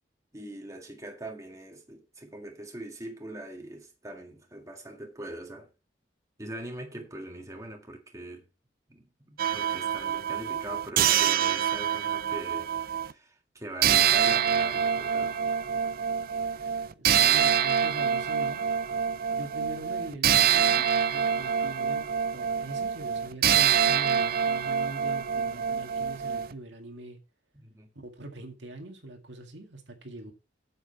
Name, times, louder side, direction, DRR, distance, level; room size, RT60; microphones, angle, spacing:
voice 1, 0.3-5.7 6.4-8.5 8.9-15.4 27.5-27.9, right 1 dB, 20° right, 1.9 m, -42 dB
sound 1, 9.4-13.1 13.8-26.5, right 8 dB, 55° right, 0.5 m, -26 dB
voice 2, 16.9-18.7 19.3-22.1 22.3-27.2 28.0-30.3, right 2 dB, 75° right, 2.0 m, -42 dB
8.3 x 7.9 x 4.6 m
head